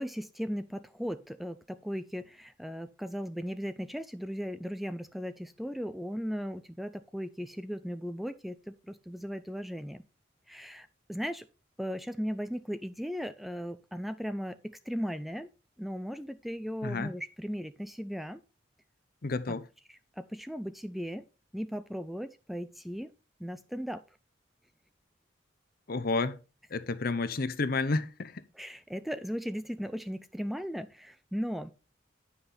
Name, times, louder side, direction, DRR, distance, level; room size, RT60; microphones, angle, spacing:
voice 1, 0.0-10.0 10.5-11.5 11.8-15.5 15.8-18.4 20.2-21.2 21.5-23.1 23.4-24.0 28.6-31.7, equal, ahead, 0.3 m, -37 dB
voice 2, 16.8-17.1 19.2-19.7 25.9-26.4 26.7-28.4, left 3 dB, 50° left, 0.7 m, -31 dB
9.7 x 5.7 x 4.2 m
head